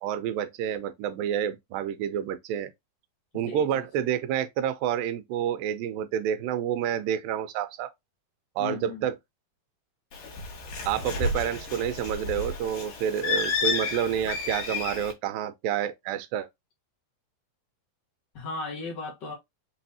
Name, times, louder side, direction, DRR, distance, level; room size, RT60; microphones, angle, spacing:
voice 1, 0.0-2.7 3.3-7.9 8.6-9.2 10.8-16.5, right 9 dB, 85° right, 2.3 m, -29 dB
voice 2, 3.3-3.8 8.6-9.1 18.3-19.3, left 4 dB, 60° left, 1.2 m, -36 dB
Bird, 10.1-15.1, left 4 dB, 75° left, 2.9 m, -31 dB
5.9 x 3.2 x 2.8 m
omnidirectional pair, 4.0 m